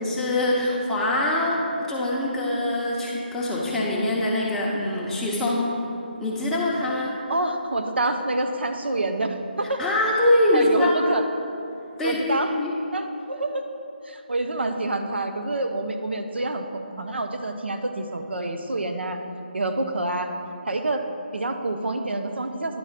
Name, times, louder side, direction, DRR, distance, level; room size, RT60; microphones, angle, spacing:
voice 1, 0.0-1.6 1.9-5.6 6.2-7.1 9.8-10.9 12.0-12.7, left 1 dB, 5° left, -6 dB, 0.9 m, -23 dB
voice 2, 7.3-9.8 10.5-11.3 12.0-12.5 12.9-13.6 14.0-19.2 19.5-20.4 20.7-21.0 21.3-22.8, right 2 dB, 85° right, 6 dB, 0.7 m, -27 dB
10.5 x 3.5 x 5.8 m, 2.8 s
figure-of-eight pair, 160°, 6 cm